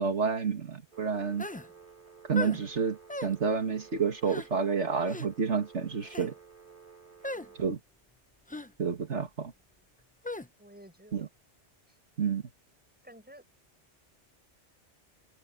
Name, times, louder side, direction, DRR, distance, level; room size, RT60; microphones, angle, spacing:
voice 1, 0.0-1.5 2.3-6.3 7.6-7.8 8.8-9.5 11.1-11.3 12.2-12.4, right 5 dB, 75° right, 2.3 m, -29 dB
Telephone, 0.9-7.7, right 6 dB, 35° right, 4.1 m, -53 dB
sound 1, 1.4-1.7 2.3-2.6 3.1-3.3 4.2-4.5 5.1-5.3 6.0-6.3 7.2-7.5 8.5-8.7 10.2-10.5, left 2 dB, 15° left, 0.3 m, -37 dB
voice 2, 10.6-11.3 11.9-12.0 12.4-12.5 13.0-13.5, equal, 10° right, 7.0 m, -53 dB
omnidirectional pair, 1.2 m